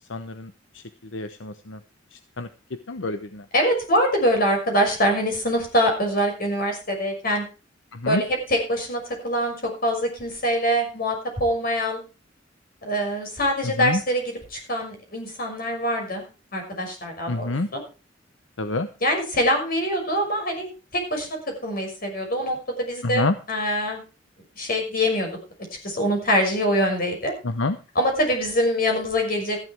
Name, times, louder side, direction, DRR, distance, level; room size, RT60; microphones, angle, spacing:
voice 1, 0.1-1.8 2.1-3.5 7.9-8.2 13.6-14.0 17.3-17.7 18.6-18.9 23.0-23.3 27.4-27.8, left 2 dB, 80° left, 10 dB, 0.9 m, -28 dB
voice 2, 3.5-7.4 8.1-12.0 12.8-16.2 16.5-17.8 19.0-21.3 21.6-23.2 23.5-24.0 24.6-25.3 25.8-27.3 27.9-29.6, equal, 50° left, 3 dB, 6.2 m, -24 dB
14.0 x 11.0 x 4.6 m, 0.33 s
head